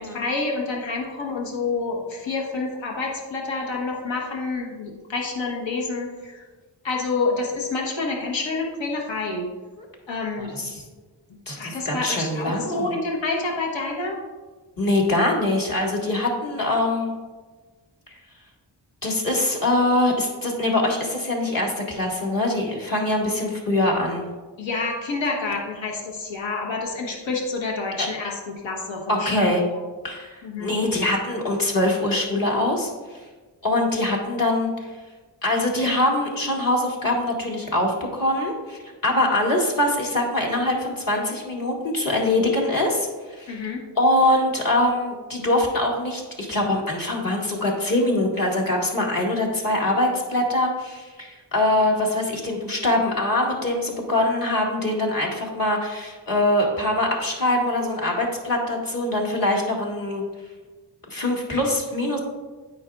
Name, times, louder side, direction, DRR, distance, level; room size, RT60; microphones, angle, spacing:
voice 1, 0.0-6.4 6.8-9.5 10.1-10.7 11.5-14.2 24.6-29.3 30.4-30.7 43.5-43.8, left 3 dB, 80° left, -1 dB, 1.3 m, -28 dB
voice 2, 10.4-10.8 11.5-13.0 14.8-17.1 18.1-18.2 19.0-24.3 28.0-28.1 29.1-29.6 30.0-33.2 33.6-35.0 35.4-43.6 44.0-60.2 61.1-62.2, left 1 dB, 45° left, -2 dB, 1.8 m, -23 dB
8.7 x 5.1 x 2.4 m, 1.3 s
cardioid pair, 45°, 45 cm